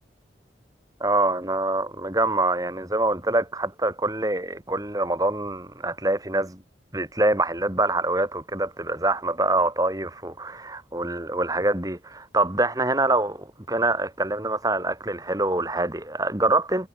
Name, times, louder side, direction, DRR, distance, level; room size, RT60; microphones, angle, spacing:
voice 1, 1.0-6.6 6.9-16.9, right 2 dB, 20° right, 3.2 m, -25 dB
head